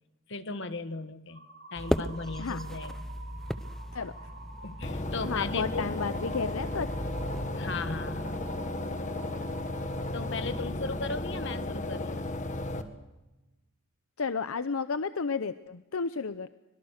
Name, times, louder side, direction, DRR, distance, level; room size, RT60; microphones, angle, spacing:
voice 1, 0.3-1.4 1.7-3.0 4.6-5.9 7.5-8.4 10.1-12.2, left 3 dB, 60° left, 10 dB, 1.6 m, -37 dB
sound 1, 1.3-10.6, right 3 dB, 50° right, 3.2 m, -48 dB
sound 2, 1.8-7.5, equal, ahead, 0.8 m, -37 dB
sound 3, 4.8-12.8, left 1 dB, 35° left, 1.7 m, -34 dB
voice 2, 5.3-6.9 14.2-16.5, left 5 dB, 80° left, 13 dB, 0.7 m, -32 dB
25.0 x 22.5 x 6.5 m, 1.1 s
head